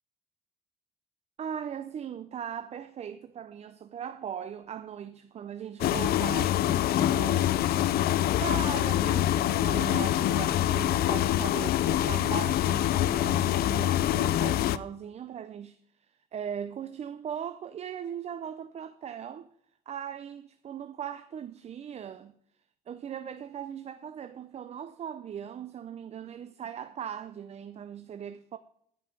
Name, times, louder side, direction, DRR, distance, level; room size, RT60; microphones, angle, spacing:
voice 1, 1.4-7.6 8.4-15.8 16.3-19.5 19.9-22.3 22.9-28.6, right 8 dB, 40° right, 0.6 m, -39 dB
sound 1, 5.8-14.8, left 13 dB, 65° left, 0.5 m, -25 dB
14.0 x 5.4 x 5.4 m
cardioid pair, 110°, 17 cm